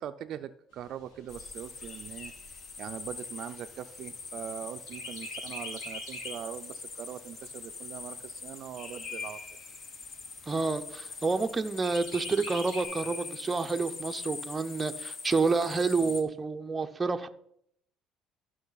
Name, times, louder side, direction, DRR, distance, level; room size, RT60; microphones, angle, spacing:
voice 1, 0.0-2.3 2.8-9.4, right 10 dB, 55° right, 10 dB, 0.4 m, -41 dB
Chirp tweet, 0.7-4.5 4.9-6.5 7.0-7.1 7.4-8.4 9.0-9.1 9.4-9.5 10.0-10.5 11.8-12.8, left 1 dB, 85° left, 4.5 m, -44 dB
sound 1, 1.3-16.2, left 4 dB, 40° left, 1.1 m, -43 dB
voice 2, 10.5-17.3, right 4 dB, 20° right, 7 dB, 0.6 m, -29 dB
13.5 x 6.1 x 4.0 m, 0.70 s
cardioid pair, 135°, 0 cm